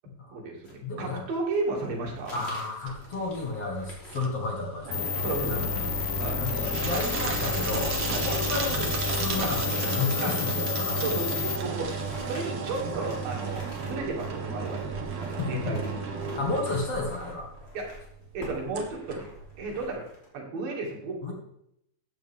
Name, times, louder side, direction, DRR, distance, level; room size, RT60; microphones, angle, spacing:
voice 1, 0.3-2.4 5.2-5.7 6.2-6.5 8.1-8.3 9.4-9.5 10.2-10.3 11.0-14.9 15.2-16.1 17.7-17.9 18.3-19.3 19.6-20.1 20.3-21.3, right 3 dB, 75° right, -1 dB, 4.3 m, -33 dB
sound 1, 0.6-20.3, left 1 dB, 20° left, 2.9 m, -49 dB
voice 2, 0.8-1.2 2.3-5.9 6.4-11.0 15.4-15.8 16.3-17.5 21.2-21.3, left 3 dB, 50° left, 0 dB, 2.5 m, -32 dB
sound 2, 2.9-19.9, right 5 dB, 55° right, 2.2 m, -33 dB
sound 3, 4.9-11.6, left 13 dB, 85° left, 2.3 m, -31 dB
14.0 x 9.0 x 3.6 m, 0.76 s
omnidirectional pair, 4.2 m